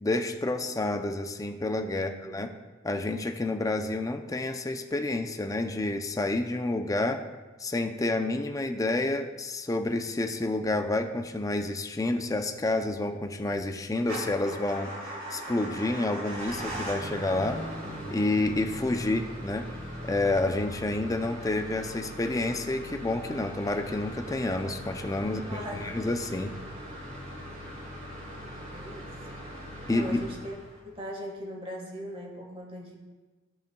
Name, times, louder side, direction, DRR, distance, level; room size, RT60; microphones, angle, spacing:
voice 1, 0.0-2.5 2.8-7.2 7.6-17.6 18.1-19.7 20.0-26.5 29.9-30.2, left 2 dB, 15° left, 5 dB, 0.5 m, -29 dB
voice 2, 1.9-2.4 25.5-26.0 28.5-29.1 29.9-30.5 30.8-33.0, equal, 30° right, 0 dB, 1.5 m, -39 dB
Motor vehicle (road) / Engine starting / Idling, 14.0-31.0, equal, 50° right, 2.6 m, -40 dB
15.5 x 5.3 x 2.3 m, 1.3 s
head